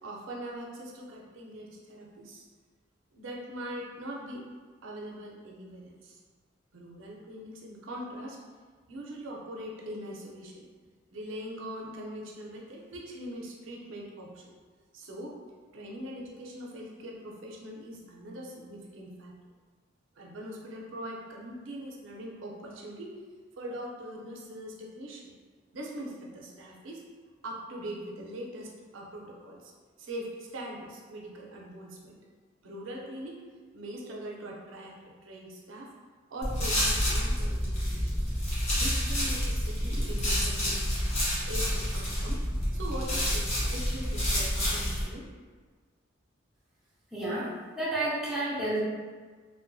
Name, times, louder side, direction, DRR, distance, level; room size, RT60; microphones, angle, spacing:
voice 1, 0.0-2.4 3.1-4.4 4.8-6.2 6.7-8.4 8.9-10.6 11.1-14.6 14.9-15.4 15.7-19.3 20.2-23.1 23.6-25.3 25.7-27.0 27.4-29.7 30.0-32.2 32.6-33.4 33.7-35.9 36.3-38.1 38.7-40.8 41.5-42.4 42.7-45.3, right 1 dB, 85° right, -2 dB, 0.5 m, -41 dB
sound 1, 36.4-45.0, equal, 35° left, 0.8 m, -28 dB
voice 2, 47.1-48.8, right 1 dB, ahead, -8 dB, 0.5 m, -31 dB
2.9 x 2.1 x 2.5 m, 1.5 s
head